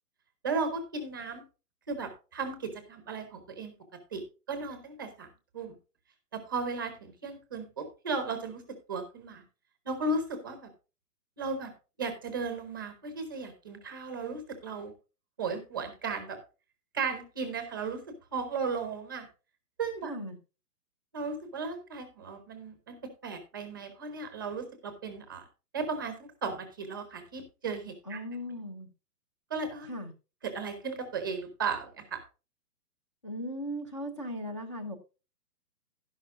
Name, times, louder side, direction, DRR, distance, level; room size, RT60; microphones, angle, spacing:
voice 1, 0.4-1.4 1.9-3.7 4.1-4.2 4.5-5.3 5.5-5.7 6.3-8.6 8.9-9.4 9.8-10.7 11.4-11.7 12.0-14.9 15.4-16.4 16.9-18.0 18.3-19.3 19.8-20.1 21.1-22.9 23.2-25.4 25.7-28.2 29.5-29.9 30.4-32.2, right 4 dB, 15° right, 7 dB, 0.8 m, -35 dB
voice 2, 20.0-20.4 28.1-28.9 29.8-30.1 33.2-35.0, equal, 20° left, 5 dB, 0.6 m, -37 dB
12.0 x 10.5 x 2.6 m, 0.31 s
hypercardioid pair, 170°, 48 cm